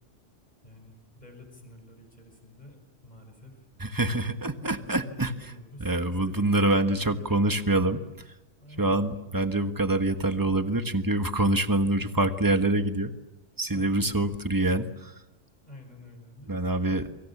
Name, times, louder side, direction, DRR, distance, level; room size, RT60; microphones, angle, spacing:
voice 1, 0.6-3.7 4.7-7.6 8.6-9.0 13.7-14.5 15.7-17.1, left 1 dB, 35° left, 4 dB, 6.3 m, -49 dB
voice 2, 3.8-5.3 5.8-8.3 8.8-13.1 13.6-15.2 16.5-17.1, right 2 dB, 15° right, 8 dB, 1.4 m, -25 dB
29.5 x 25.0 x 7.3 m, 0.97 s
omnidirectional pair, 1.3 m